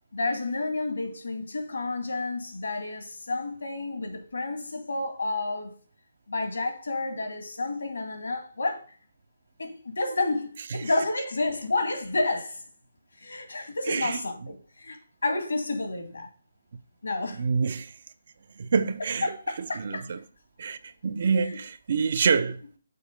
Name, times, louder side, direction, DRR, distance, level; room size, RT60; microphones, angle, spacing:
voice 1, 0.1-5.8 6.3-8.8 9.6-12.6 13.2-16.3 17.0-17.5 19.2-20.1 21.4-21.5, left 2 dB, 75° left, 2.0 m, -30 dB
voice 2, 13.9-14.2 17.3-17.9 18.6-20.2 20.6-22.6, right 5 dB, 55° right, 0.6 m, -27 dB
6.8 x 4.3 x 5.3 m
figure-of-eight pair, 145°, 0 cm